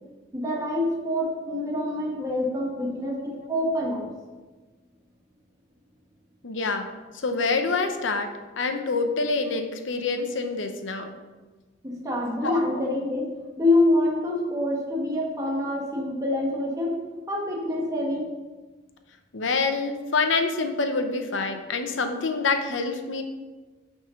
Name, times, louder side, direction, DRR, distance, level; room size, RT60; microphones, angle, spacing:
voice 1, 0.3-4.1 11.8-17.0 17.3-18.3, left 1 dB, 20° right, -3 dB, 1.6 m, -26 dB
voice 2, 6.4-6.9 7.1-8.3 8.6-11.1 12.4-12.6 19.3-23.2, left 4 dB, 75° left, 7 dB, 0.8 m, -26 dB
6.1 x 5.7 x 5.2 m, 1.3 s
head